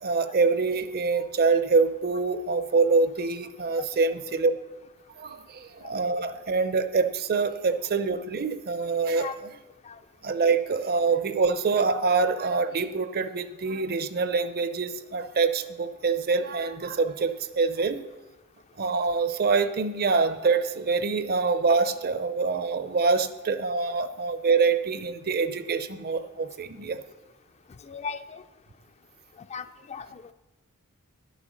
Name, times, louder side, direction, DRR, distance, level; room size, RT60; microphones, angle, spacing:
voice 1, 0.0-4.5 5.2-9.3 10.2-18.0 18.8-27.0, right 4 dB, 45° right, 11 dB, 0.6 m, -25 dB
voice 2, 27.9-28.4 29.5-30.3, left 6 dB, 30° left, 11 dB, 0.4 m, -37 dB
10.5 x 8.2 x 6.2 m, 1.1 s
head